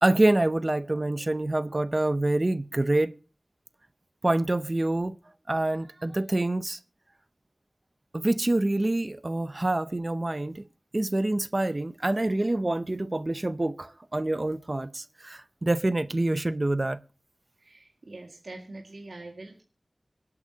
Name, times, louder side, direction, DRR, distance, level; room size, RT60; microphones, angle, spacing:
voice 1, 0.0-3.1 4.2-5.2 5.5-6.8 8.1-10.7 10.9-17.0, right 2 dB, 40° right, 0.6 m, -26 dB
voice 2, 17.6-19.6, right 2 dB, 85° right, 1.9 m, -44 dB
25.0 x 8.5 x 2.8 m
wide cardioid pair, 65°, 0 cm